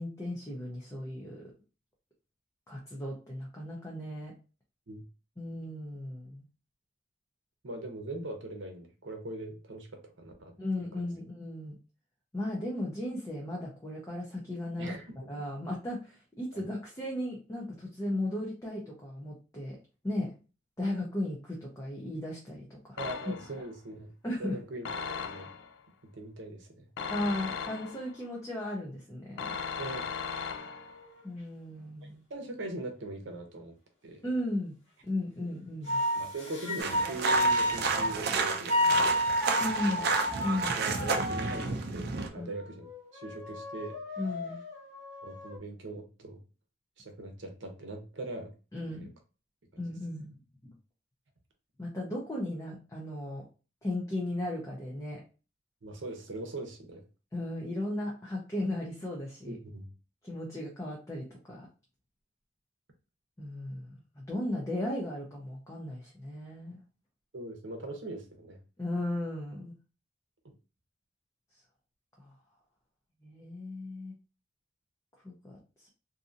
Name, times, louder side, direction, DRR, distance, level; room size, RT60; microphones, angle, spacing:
voice 1, 0.0-1.4 2.7-4.3 5.4-6.4 10.6-11.8 12.3-14.9 15.3-19.8 20.0-20.3 20.8-23.0 24.2-24.6 27.1-29.6 31.2-32.2 34.2-34.7 35.0-36.0 39.6-40.0 40.4-40.8 42.4-42.5 44.2-44.6 48.7-49.1 49.8-50.7 51.8-53.4 53.8-55.2 57.3-59.5 60.2-61.7 63.4-66.8 68.8-69.7 72.2-72.3 73.2-74.1 75.2-75.9, left 1 dB, 15° left, -3 dB, 0.5 m, -36 dB
voice 2, 7.6-10.5 10.9-11.1 14.8-15.3 23.0-24.1 24.4-25.5 26.0-26.9 29.8-30.1 32.3-33.7 34.0-34.2 36.1-39.1 39.8-40.1 40.8-42.9 43.1-44.2 45.2-46.4 47.0-48.5 49.0-49.1 55.8-57.0 59.5-59.9 67.3-68.6, right 2 dB, 85° right, 4 dB, 0.7 m, -41 dB
sound 1, 23.0-23.7 24.8-25.7 27.0-28.2 29.4-31.0, left 6 dB, 75° left, 0.3 m, -37 dB
sound 2, 30.6-31.2 35.9-38.2 38.7-41.7 42.3-45.6, equal, 35° left, 1.2 m, -31 dB
sound 3, 36.8-42.3, right 5 dB, 60° right, 0.4 m, -31 dB
2.7 x 2.6 x 2.5 m, 0.33 s
head